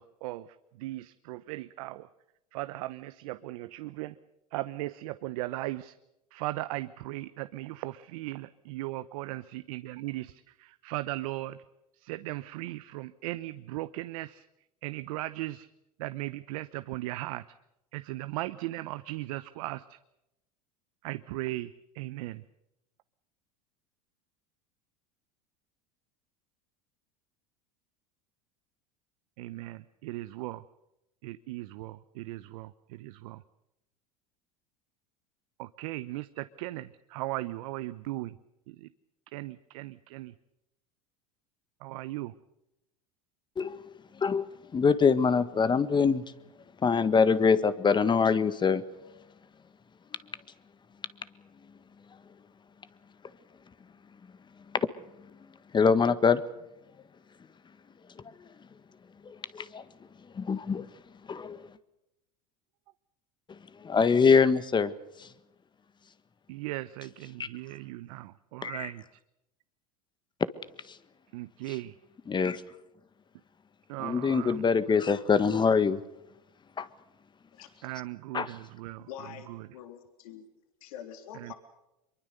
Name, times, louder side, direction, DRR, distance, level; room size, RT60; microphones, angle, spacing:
voice 1, 0.0-2.1 2.5-4.2 4.5-5.9 6.3-11.6 11.9-14.4 14.8-15.7 16.0-17.4 17.9-20.0 21.0-22.4 29.4-30.6 31.2-33.4 35.6-38.4 38.7-38.9 39.3-40.3 41.8-42.3 66.5-69.2 71.3-71.9 73.9-74.6 77.8-79.1 79.5-79.7 81.3-81.5, right 17 dB, 70° right, 13 dB, 0.9 m, -38 dB
voice 2, 43.6-43.9 44.2-44.4 44.7-46.2 46.8-48.8 54.7-54.9 55.7-56.4 59.2-59.8 60.3-60.9 61.3-61.6 63.8-64.9 68.6-68.9 72.3-72.6 74.0-76.0 76.8-76.9 78.3-78.5, left 5 dB, 25° left, 14 dB, 1.6 m, -24 dB
voice 3, 79.0-80.5 80.8-81.5, left 9 dB, 75° left, 7 dB, 3.4 m, -45 dB
24.0 x 23.0 x 6.8 m, 0.89 s
hypercardioid pair, 95°, 19 cm